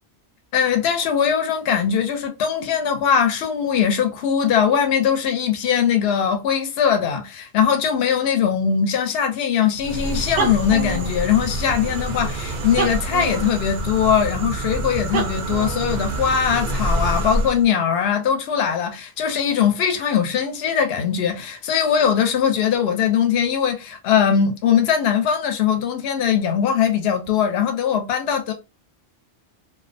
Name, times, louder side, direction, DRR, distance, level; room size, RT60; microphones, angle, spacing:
voice 1, 0.5-28.5, left 8 dB, 65° left, 0.8 m, -21 dB
sound 1, 9.8-17.6, right 2 dB, 60° right, 0.5 m, -26 dB
2.4 x 2.1 x 2.5 m
omnidirectional pair, 1.2 m